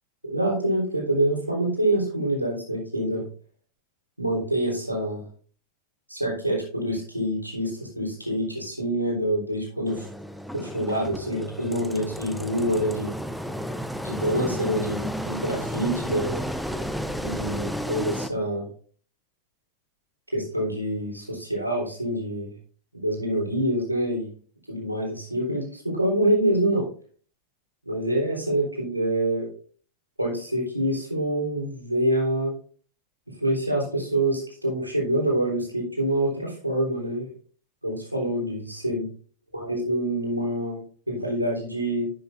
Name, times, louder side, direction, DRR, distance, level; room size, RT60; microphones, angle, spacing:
voice 1, 0.2-3.2 4.2-5.2 6.1-10.1 10.5-13.1 14.0-16.4 17.2-18.7 20.3-22.5 22.9-24.3 24.7-26.9 27.9-29.5 30.2-32.5 33.4-37.3 37.8-39.1 39.5-42.1, right 1 dB, 90° right, -2 dB, 3.6 m, -26 dB
Engine, 9.9-18.3, equal, ahead, 0.7 m, -32 dB
11.0 x 7.7 x 2.6 m, 0.42 s
figure-of-eight pair, 90°, 0 cm